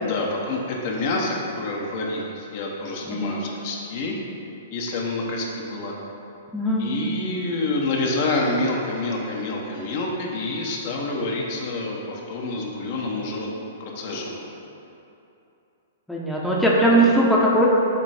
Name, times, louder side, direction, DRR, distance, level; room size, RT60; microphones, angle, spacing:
voice 1, 0.0-4.2 4.7-5.9 6.8-13.5 13.8-14.4 16.9-17.1, left 2 dB, 50° left, -1 dB, 0.8 m, -27 dB
voice 2, 3.0-3.4 6.5-6.8 16.1-17.7, right 1 dB, ahead, -5 dB, 0.8 m, -19 dB
6.8 x 3.0 x 4.9 m, 2.8 s
figure-of-eight pair, 110°, 0 cm